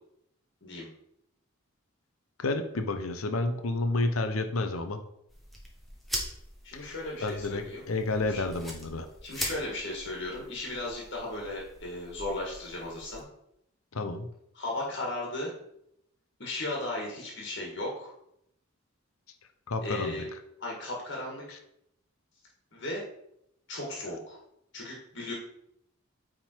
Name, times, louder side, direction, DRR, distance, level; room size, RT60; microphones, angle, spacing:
voice 1, 2.4-5.0 6.7-7.0 7.2-9.1 13.9-14.3 19.7-20.2, left 2 dB, 90° left, 7 dB, 0.8 m, -30 dB
sound 1, 5.3-13.2, equal, ahead, 1.3 m, -42 dB
voice 2, 6.6-7.8 8.1-8.4 9.2-13.2 14.5-15.5 16.4-18.1 19.8-20.3 20.6-21.6 22.7-23.0 23.7-24.4 24.7-25.3, left 2 dB, 55° left, -2 dB, 1.8 m, -36 dB
8.8 x 3.8 x 4.5 m, 0.76 s
head